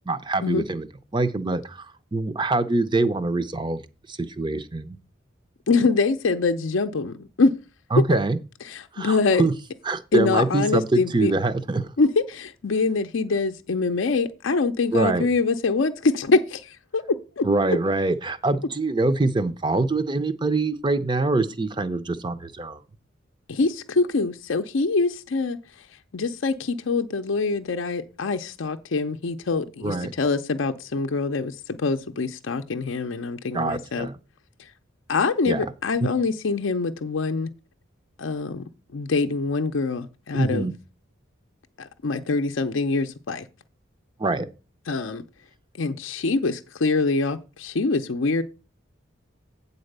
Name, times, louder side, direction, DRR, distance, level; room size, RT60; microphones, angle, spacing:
voice 1, 0.1-0.9 1.1-3.8 4.1-5.0 7.9-8.4 8.9-9.5 9.8-11.9 14.9-15.3 17.4-22.8 29.8-30.1 33.5-34.2 35.5-35.7 36.0-36.1 40.3-40.7 44.2-44.5, right 2 dB, 20° right, 0.5 m, -24 dB
voice 2, 5.7-7.5 8.0-8.1 8.7-9.4 10.1-11.3 12.0-17.5 23.5-25.6 26.1-34.1 35.1-37.5 38.2-40.7 41.8-43.5 44.9-45.2 45.7-48.4, left 3 dB, 70° left, 0.5 m, -24 dB
8.7 x 4.1 x 6.6 m
head